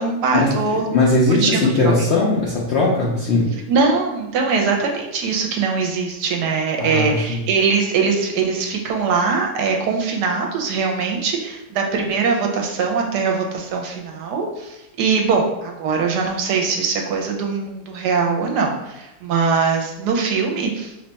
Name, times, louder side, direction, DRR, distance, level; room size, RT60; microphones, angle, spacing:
voice 1, 0.0-0.8 1.3-1.9 3.7-20.9, right 5 dB, 80° right, 2 dB, 1.2 m, -21 dB
voice 2, 0.9-3.5 6.8-7.4, left 2 dB, 70° left, -4 dB, 0.6 m, -19 dB
3.1 x 2.2 x 3.9 m, 0.93 s
omnidirectional pair, 1.8 m